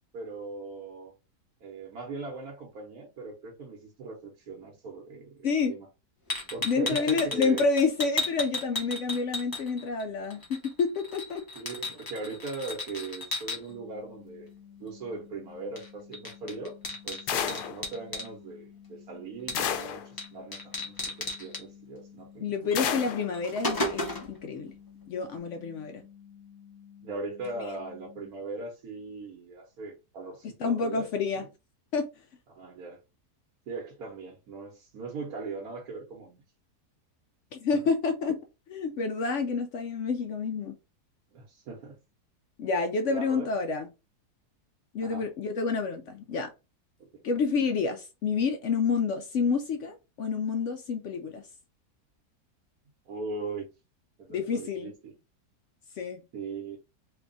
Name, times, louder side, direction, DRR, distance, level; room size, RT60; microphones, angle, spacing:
voice 1, 0.1-1.1 1.6-5.9 6.5-7.6 11.5-14.5 14.8-16.8 17.0-22.8 27.0-31.1 31.3-31.5 32.5-33.0 33.7-36.4 37.7-37.8 41.3-42.0 43.0-43.6 45.0-45.3 47.0-47.2 53.1-53.7 54.2-55.2 56.3-56.8, right 3 dB, 70° right, 1.3 m, -39 dB
sound 1, 6.3-10.0 10.3-13.6 15.8-15.9 16.1-18.3 19.5-19.8 20.2-20.3 20.5-21.6 22.7-22.8 23.2-24.4, left 2 dB, 25° left, 0.5 m, -34 dB
voice 2, 6.6-11.4 22.4-24.7 25.1-26.0 30.6-31.4 31.9-32.1 37.5-38.4 38.7-40.7 42.6-43.9 44.9-46.5 47.2-51.4 54.3-54.9 56.0-56.2, left 5 dB, 70° left, 0.7 m, -28 dB
sound 2, 13.7-28.3, left 8 dB, 45° left, 1.2 m, -52 dB
sound 3, 17.3-17.8 19.5-20.1 22.7-23.3, left 8 dB, 85° left, 1.1 m, -30 dB
3.4 x 2.3 x 3.8 m
omnidirectional pair, 1.7 m